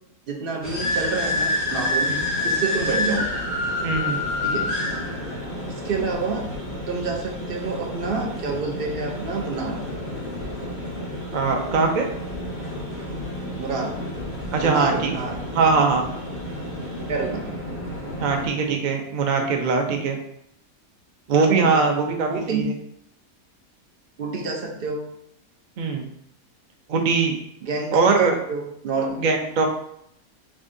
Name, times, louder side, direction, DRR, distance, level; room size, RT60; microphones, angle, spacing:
voice 1, 0.3-2.1 2.4-3.4 4.4-4.8 5.7-6.6 6.9-9.8 13.6-14.0 14.6-15.4 17.1-17.6 21.6-21.9 22.3-22.6 24.2-25.1 27.6-29.2, right 4 dB, 55° right, 2 dB, 0.7 m, -28 dB
sound 1, 0.6-18.5, left 1 dB, 30° left, 1.4 m, -29 dB
voice 2, 3.8-4.2 11.3-12.1 14.5-15.1 15.5-16.0 18.2-20.2 21.3-22.7 25.8-26.0 26.9-27.4 27.9-28.4 29.2-29.7, right 4 dB, 85° right, 3 dB, 0.4 m, -21 dB
6.9 x 2.6 x 2.6 m, 0.73 s
omnidirectional pair, 1.5 m